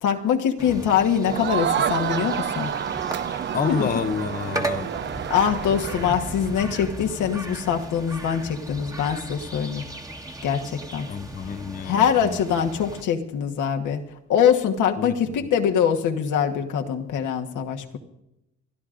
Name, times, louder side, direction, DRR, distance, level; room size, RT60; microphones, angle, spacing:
voice 1, 0.0-2.7 3.7-3.9 5.3-9.8 10.4-11.1 11.8-14.0 14.3-18.0, left 8 dB, 80° left, 4 dB, 1.3 m, -23 dB
sound 1, 0.6-13.0, right 1 dB, 10° right, 1.2 m, -36 dB
Crowd, 1.2-6.6, right 9 dB, 40° right, 0.5 m, -29 dB
voice 2, 3.5-4.9 11.1-12.4 15.0-15.1, left 6 dB, 30° left, 11 dB, 0.6 m, -28 dB
28.5 x 12.0 x 2.5 m, 0.87 s
cardioid pair, 90°, 30 cm